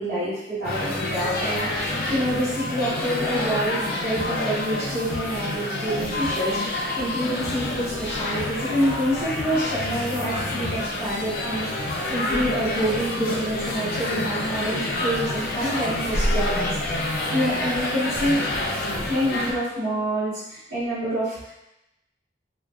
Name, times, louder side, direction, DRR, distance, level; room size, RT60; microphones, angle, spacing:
voice 1, 0.0-18.4 19.0-21.5, equal, 55° right, -17 dB, 1.1 m, -27 dB
sound 1, 0.6-19.5, left 1 dB, 55° left, 0.4 m, -28 dB
2.3 x 2.3 x 2.3 m, 0.90 s
head